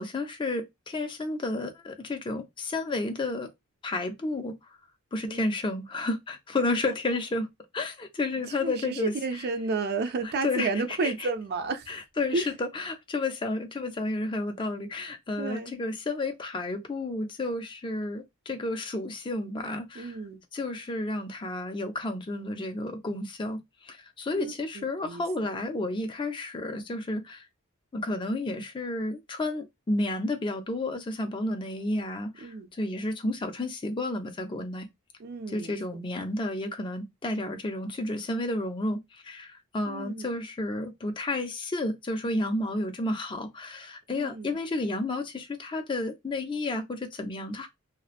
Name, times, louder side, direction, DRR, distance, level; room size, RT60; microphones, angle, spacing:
voice 1, 0.0-3.5 3.8-4.6 5.1-7.5 7.7-9.1 10.4-10.7 11.0-11.1 11.9-20.1 20.5-27.5 27.9-34.9 35.5-47.7, left 2 dB, 20° left, 0.4 m, -31 dB
voice 2, 8.5-11.9 12.3-12.5 15.4-15.7 20.0-20.4 24.3-25.2 32.4-32.7 35.2-35.7 39.9-40.3 44.1-44.6, right 3 dB, 45° right, 0.4 m, -32 dB
2.7 x 2.0 x 2.4 m
head